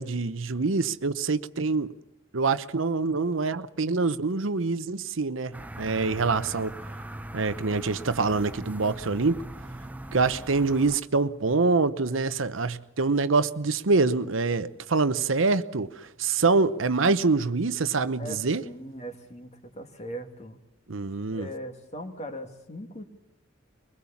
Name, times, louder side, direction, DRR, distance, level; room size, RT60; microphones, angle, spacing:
voice 1, 0.0-1.9 2.3-6.7 7.3-9.4 10.1-18.6 20.9-21.5, right 4 dB, 80° right, 0.9 m, -25 dB
sound 1, 5.5-11.0, right 1 dB, 10° right, 0.7 m, -40 dB
voice 2, 18.2-20.6 21.3-23.0, equal, 35° left, 2.4 m, -39 dB
23.0 x 21.0 x 7.2 m
head